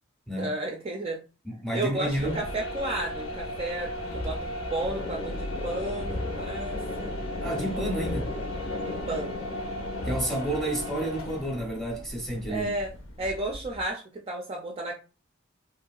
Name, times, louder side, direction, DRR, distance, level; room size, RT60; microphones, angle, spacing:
voice 1, 0.4-1.2 1.7-7.1 7.4-7.8 8.8-9.4 12.5-12.9 13.2-14.9, right 2 dB, 25° right, 0.4 m, -33 dB
voice 2, 1.4-2.4 7.4-8.3 10.0-12.7, right 1 dB, ahead, 0.7 m, -30 dB
sound 1, 2.1-13.9, equal, 75° left, 0.8 m, -36 dB
sound 2, 4.8-10.2, left 3 dB, 50° left, 0.4 m, -36 dB
2.9 x 2.7 x 2.3 m
head